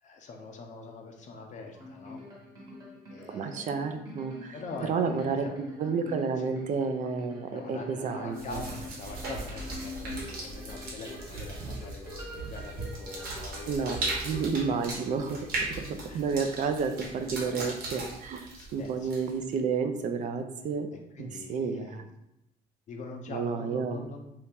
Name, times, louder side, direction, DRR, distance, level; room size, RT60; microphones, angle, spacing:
voice 1, 0.0-2.2 3.1-3.8 4.5-5.5 6.4-6.6 7.5-14.5 16.1-16.2 17.4-17.5 18.6-19.1 20.9-22.1 22.9-24.4, left 3 dB, 45° left, 2 dB, 0.6 m, -43 dB
sound 1, 1.7-15.9, left 1 dB, 20° right, 1.2 m, -45 dB
voice 2, 3.3-4.5 4.9-5.5 5.8-8.6 13.7-14.0 14.2-15.4 15.7-20.9 21.2-22.0 23.3-24.0, right 5 dB, 50° right, 7 dB, 0.5 m, -31 dB
sound 2, 8.3-19.5, right 2 dB, 70° right, 1.1 m, -38 dB
2.9 x 2.8 x 3.5 m, 0.83 s
cardioid pair, 110°, 17 cm